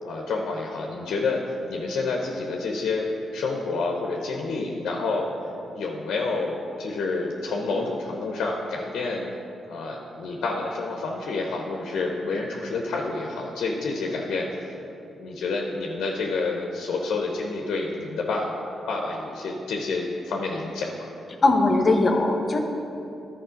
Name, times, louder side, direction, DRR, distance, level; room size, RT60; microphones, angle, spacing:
voice 1, 0.0-1.4 1.7-3.0 3.3-5.3 5.8-9.3 9.7-14.7 15.2-18.5 18.9-21.1, left 3 dB, 75° left, 0 dB, 0.8 m, -28 dB
voice 2, 21.4-22.6, left 2 dB, 45° left, 3 dB, 1.0 m, -20 dB
11.0 x 4.2 x 5.1 m, 2.9 s
supercardioid pair, 50°, 0 cm